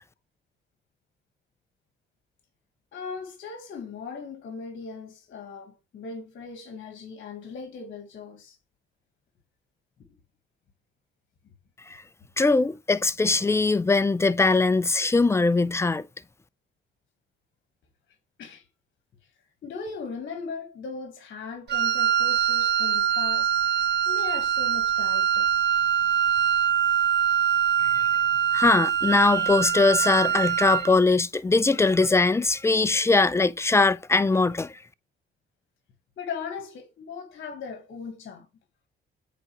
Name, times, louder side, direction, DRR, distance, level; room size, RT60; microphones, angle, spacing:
voice 1, 2.9-8.6 18.4-18.6 19.6-23.5 24.0-25.5 36.2-38.5, left 5 dB, 60° left, 1.4 m, -38 dB
voice 2, 12.4-16.0 27.9-28.0 28.5-34.8, left 3 dB, 15° left, 0.5 m, -21 dB
Wind instrument woodwind instrument, 21.7-30.9, right 9 dB, 55° right, 1.2 m, -23 dB
8.3 x 3.8 x 3.0 m
cardioid pair, 90°, 20 cm